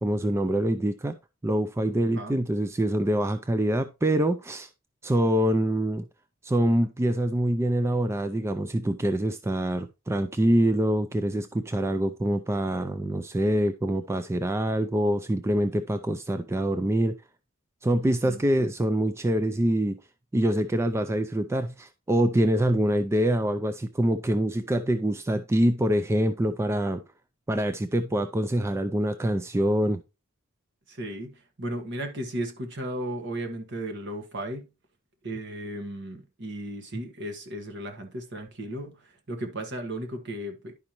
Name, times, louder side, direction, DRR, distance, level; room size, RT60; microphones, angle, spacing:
voice 1, 0.0-1.1 1.4-4.7 5.0-6.1 6.4-17.2 17.8-20.0 20.3-27.0 27.5-30.0, right 1 dB, 10° right, 0.3 m, -25 dB
voice 2, 1.9-2.4 18.0-18.4 30.9-34.7 35.2-40.7, right 1 dB, 55° right, 1.4 m, -35 dB
10.5 x 5.2 x 3.0 m
head